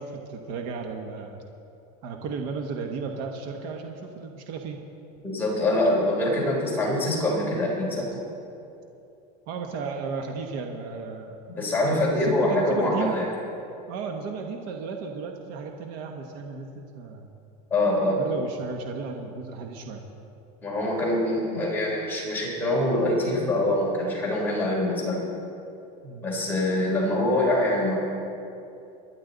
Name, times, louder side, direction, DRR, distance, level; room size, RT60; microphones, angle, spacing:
voice 1, 0.0-1.4 2.0-4.8 9.5-11.4 11.8-13.1 13.9-17.3 18.2-20.0 26.0-26.3, right 5 dB, 50° right, 3 dB, 1.3 m, -34 dB
voice 2, 5.2-8.1 11.5-13.3 17.7-18.2 20.6-25.3 26.2-28.0, left 1 dB, 10° left, -5 dB, 3.6 m, -24 dB
26.0 x 11.0 x 4.0 m, 2.7 s
supercardioid pair, 155°, 20 cm